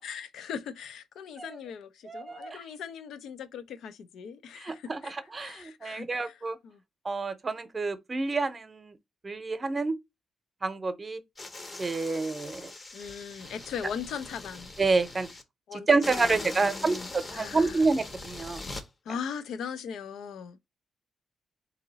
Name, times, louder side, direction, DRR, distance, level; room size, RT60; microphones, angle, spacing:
voice 1, 0.0-6.4 6.6-6.8 12.9-14.7 15.7-15.9 16.5-17.1 17.3-17.8 19.1-20.7, left 7 dB, 90° left, 0.4 m, -39 dB
voice 2, 2.0-2.6 4.5-6.6 7.0-9.0 9.2-10.0 10.6-11.2 11.8-12.7 14.8-15.3 15.7-18.6, right 3 dB, 30° right, 0.7 m, -28 dB
sound 1, 11.4-15.4 16.0-18.8, left 2 dB, 30° left, 0.6 m, -41 dB
3.8 x 2.7 x 3.9 m
cardioid pair, 115°, 0 cm